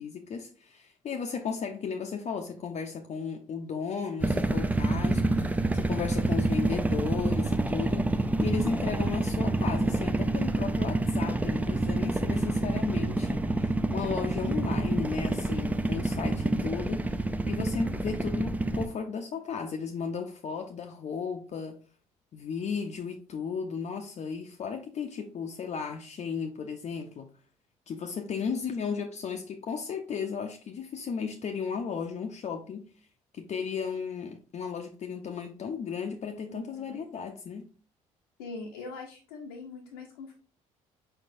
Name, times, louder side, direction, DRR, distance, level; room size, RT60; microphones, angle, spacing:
voice 1, 0.0-21.8 22.3-27.3 27.9-32.8 33.3-37.7, left 6 dB, 40° left, 0.6 m, -35 dB
sound 1, 4.2-18.9, right 2 dB, 10° right, 0.4 m, -28 dB
voice 2, 36.5-37.0 38.4-40.3, left 3 dB, 75° left, 0.7 m, -42 dB
4.6 x 4.5 x 2.6 m
figure-of-eight pair, 50°, 18 cm